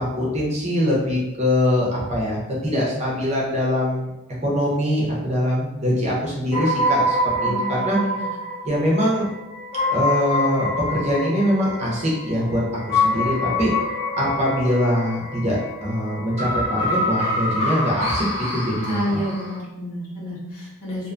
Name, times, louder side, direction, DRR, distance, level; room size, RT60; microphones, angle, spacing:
voice 1, 0.0-4.1 4.4-8.0 8.6-9.3 9.9-13.7 14.2-19.2, equal, 30° right, -4 dB, 0.6 m, -23 dB
sound 1, 6.5-19.6, left 1 dB, 25° left, 0.5 m, -26 dB
voice 2, 7.4-8.2 18.8-21.1, equal, 80° left, -6 dB, 1.0 m, -30 dB
2.5 x 2.2 x 2.5 m, 0.96 s
head